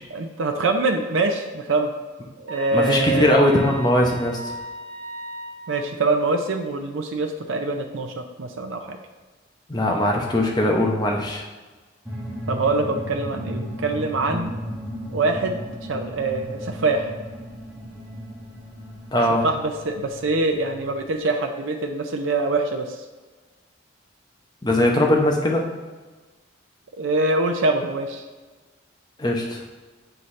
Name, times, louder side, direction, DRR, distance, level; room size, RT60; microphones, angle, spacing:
voice 1, 0.1-1.9 2.4-3.4 5.7-9.0 12.5-14.5 15.1-15.6 15.9-17.1 19.4-23.0 27.0-28.2, right 3 dB, 85° right, 4 dB, 0.6 m, -24 dB
sound 1, 2.5-5.7, right 2 dB, 60° right, 0.9 m, -36 dB
voice 2, 2.7-4.5 9.7-11.4 19.1-19.4 24.6-25.7 29.2-29.6, left 1 dB, 20° left, -1 dB, 0.8 m, -20 dB
sound 2, 12.1-21.2, equal, 15° right, 1.4 m, -35 dB
7.7 x 4.1 x 3.2 m, 1.3 s
head